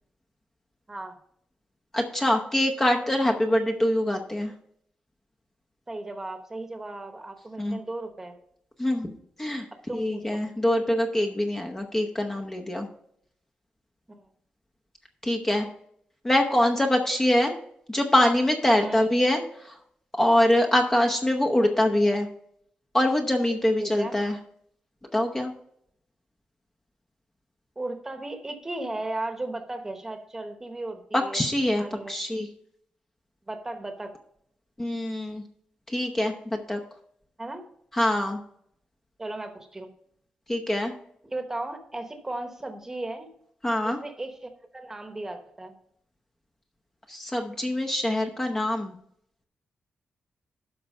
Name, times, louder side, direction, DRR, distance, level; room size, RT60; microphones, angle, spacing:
voice 1, 1.9-4.5 7.6-7.8 8.8-9.7 9.9-12.9 15.2-15.7 16.2-17.5 17.9-19.8 20.2-22.3 22.9-24.4 25.1-25.5 31.1-32.5 34.8-35.4 35.9-36.8 37.9-38.4 40.5-40.9 43.6-44.0 47.1-48.9, left 1 dB, 15° left, 3 dB, 0.8 m, -24 dB
voice 2, 5.9-8.3 9.9-10.4 14.1-14.3 18.8-19.1 23.8-24.2 27.8-31.4 31.8-32.1 33.5-34.1 37.4-37.6 39.2-39.9 41.3-43.3 43.8-45.7, right 2 dB, 15° right, 6 dB, 1.1 m, -36 dB
12.0 x 4.6 x 5.4 m, 0.70 s
wide cardioid pair, 160°, 3 cm